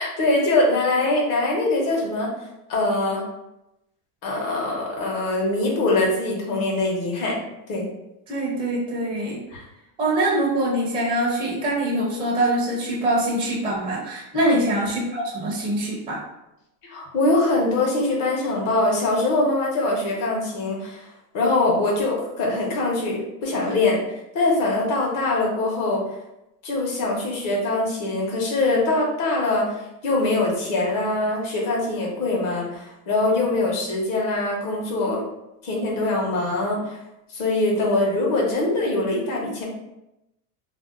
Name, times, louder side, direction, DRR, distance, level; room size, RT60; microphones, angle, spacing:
voice 1, 0.0-2.3 2.7-3.2 4.2-7.4 7.7-7.9 9.5-9.6 14.3-14.6 16.9-21.0 21.3-24.0 24.3-26.0 26.6-35.2 35.6-37.0 37.3-39.7, left 2 dB, 45° left, -2 dB, 1.1 m, -23 dB
voice 2, 8.3-9.4 10.0-16.2, right 1 dB, 10° right, -4 dB, 0.5 m, -24 dB
2.7 x 2.0 x 3.6 m, 0.89 s
supercardioid pair, 135°, 45 cm